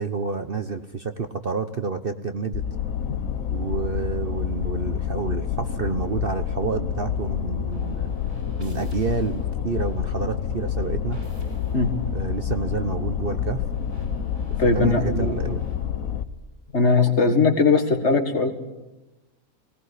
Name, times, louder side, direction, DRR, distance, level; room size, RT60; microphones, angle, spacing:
voice 1, 0.0-2.6 3.5-8.1 8.6-11.2 12.1-13.7 14.5-15.6, right 5 dB, 45° right, 9 dB, 1.0 m, -29 dB
sound 1, 2.5-16.2, left 8 dB, 65° left, 1.4 m, -28 dB
sound 2, 7.7-15.8, equal, 75° right, 7.0 m, -45 dB
voice 2, 14.6-15.4 16.7-18.5, left 3 dB, 50° left, 7 dB, 2.1 m, -19 dB
19.0 x 19.0 x 9.9 m, 1.0 s
omnidirectional pair, 1.6 m